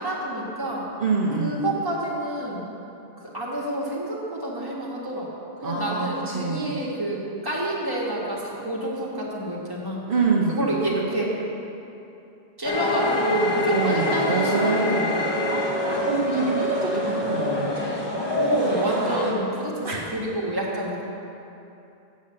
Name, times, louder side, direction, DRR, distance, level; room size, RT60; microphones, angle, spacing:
voice 1, 0.0-0.9 1.4-2.8 3.2-5.3 5.6-10.0 10.5-11.3 12.6-15.0 18.3-21.0, right 1 dB, 20° right, -5 dB, 1.6 m, -28 dB
voice 2, 1.0-1.7 5.6-6.8 10.1-10.8 13.7-15.8 16.1-17.9 19.8-20.0, right 4 dB, 60° right, -4 dB, 1.0 m, -26 dB
sound 1, 12.6-19.3, left 1 dB, 25° left, 1.3 m, -26 dB
7.4 x 7.2 x 7.5 m, 2.8 s
omnidirectional pair, 1.0 m